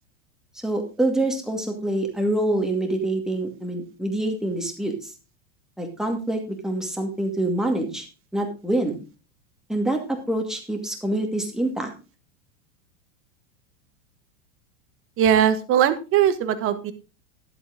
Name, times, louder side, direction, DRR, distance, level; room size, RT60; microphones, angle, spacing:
voice 1, 0.6-5.1 5.8-8.1 8.3-9.0 9.7-11.9, right 1 dB, ahead, 2 dB, 2.2 m, -26 dB
voice 2, 15.2-16.9, right 9 dB, 35° right, 11 dB, 1.3 m, -20 dB
11.0 x 8.0 x 3.8 m, 0.32 s
supercardioid pair, 125°, 37 cm